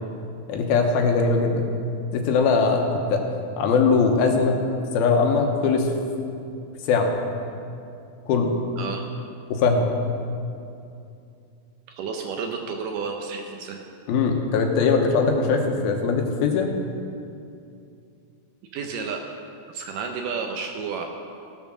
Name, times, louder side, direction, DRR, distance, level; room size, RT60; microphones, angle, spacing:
voice 1, 0.5-1.7 2.1-3.2 3.6-4.6 4.9-5.9 6.8-7.1 8.3-8.6 9.5-9.9 14.1-16.7, left 4 dB, 80° left, 3 dB, 2.8 m, -21 dB
voice 2, 8.8-9.1 11.9-13.8 18.7-19.2 19.7-21.1, right 5 dB, 75° right, 3 dB, 2.1 m, -31 dB
16.0 x 7.3 x 6.2 m, 2.6 s
omnidirectional pair, 4.4 m